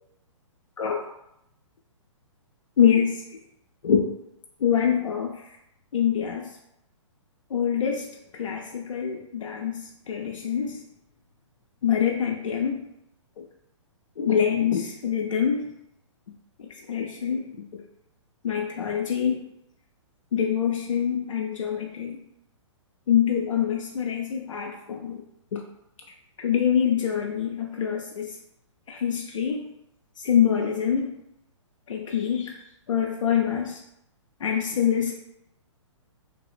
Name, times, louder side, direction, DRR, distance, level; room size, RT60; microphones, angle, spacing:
voice 1, 2.8-3.2 3.8-4.1 4.6-5.3 5.9-6.5 7.5-10.8 11.8-12.8 13.4-13.5 14.2-15.7 16.6-17.5 17.7-17.8 18.4-19.4 20.3-22.2 23.1-25.2 25.5-25.6 26.4-28.3 28.9-29.7 30.2-31.2 31.9-32.5 32.9-33.8 34.4-35.1, left 8 dB, 80° left, 1 dB, 0.4 m, -25 dB
3.2 x 2.0 x 2.4 m, 0.82 s
hypercardioid pair, 125°, 16 cm